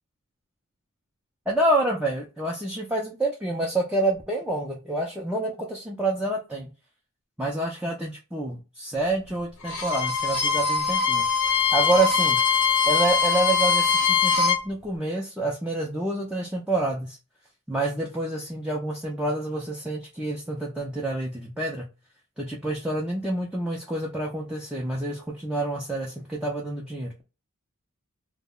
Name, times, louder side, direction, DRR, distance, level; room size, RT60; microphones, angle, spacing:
voice 1, 1.5-6.7 7.4-12.4 12.9-17.2 17.7-21.9 22.4-27.2, right 2 dB, 5° right, -2 dB, 0.3 m, -28 dB
Bowed string instrument, 9.6-14.6, left 5 dB, 85° left, 0.8 m, -22 dB
2.2 x 2.0 x 3.6 m, 0.30 s
head